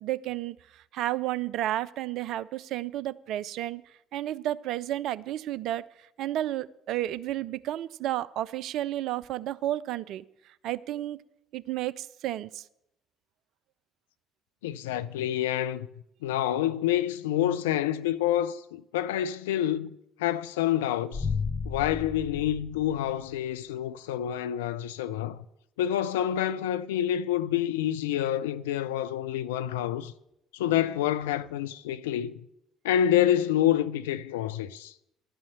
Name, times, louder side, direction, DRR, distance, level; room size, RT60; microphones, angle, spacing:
voice 1, 0.0-3.8 4.1-5.8 6.2-10.2 10.6-11.2 11.5-12.6, right 14 dB, 60° right, 0.4 m, -32 dB
voice 2, 14.6-15.9 16.2-21.3 21.7-25.4 25.8-30.1 30.5-32.4 32.8-34.9, left 11 dB, 75° left, 0.3 m, -28 dB
sound 1, 21.1-23.4, left 5 dB, 20° left, 1.2 m, -33 dB
11.5 x 5.6 x 8.8 m
figure-of-eight pair, 55°, 0 cm